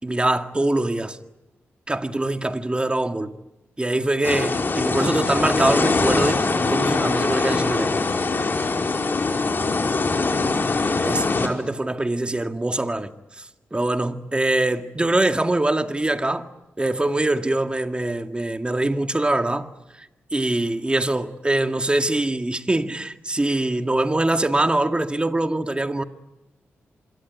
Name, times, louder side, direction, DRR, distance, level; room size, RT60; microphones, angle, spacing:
voice 1, 0.0-1.2 1.9-3.3 3.8-8.0 11.1-13.1 13.7-16.5 16.8-19.7 20.0-20.1 20.3-26.0, right 2 dB, 20° right, 2.0 m, -23 dB
sound 1, 4.2-11.5, left 3 dB, 45° left, 5.0 m, -22 dB
26.5 x 23.0 x 9.7 m
cardioid pair, 60°, 5 cm